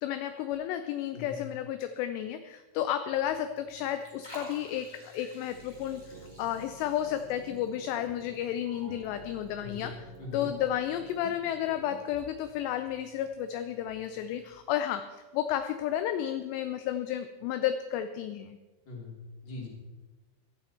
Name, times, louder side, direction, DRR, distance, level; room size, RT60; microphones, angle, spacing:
voice 1, 0.0-10.1 10.3-18.6, left 11 dB, 85° left, 9 dB, 2.5 m, -32 dB
Liquid, 3.1-14.5, left 1 dB, 10° left, 1.8 m, -55 dB
sound 1, 5.5-12.3, right 4 dB, 85° right, 4.4 m, -50 dB
voice 2, 10.2-10.5 18.8-19.1 19.4-19.7, left 4 dB, 25° left, -2 dB, 3.0 m, -41 dB
15.5 x 12.0 x 4.4 m, 1.2 s
omnidirectional pair, 5.5 m